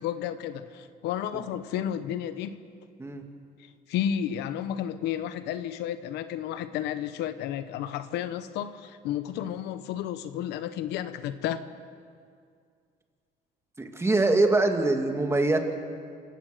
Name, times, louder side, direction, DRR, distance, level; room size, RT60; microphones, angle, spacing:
voice 1, 0.0-2.6 3.9-11.7, left 10 dB, 90° left, 12 dB, 1.1 m, -32 dB
voice 2, 13.8-15.6, right 2 dB, 15° right, 4 dB, 2.3 m, -23 dB
28.0 x 17.0 x 6.8 m, 2.2 s
cardioid pair, 110°, 17 cm